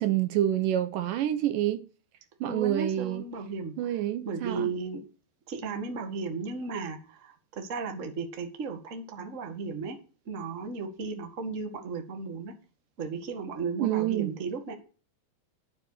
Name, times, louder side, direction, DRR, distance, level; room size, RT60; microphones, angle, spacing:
voice 1, 0.0-1.8 2.4-3.2 3.8-4.7 13.8-14.3, right 12 dB, 75° right, 2.3 m, -27 dB
voice 2, 2.5-3.9 4.2-5.0 5.5-10.0 10.2-12.5 13.0-14.7, right 4 dB, 30° right, 1.4 m, -35 dB
12.5 x 6.9 x 6.7 m
omnidirectional pair, 4.2 m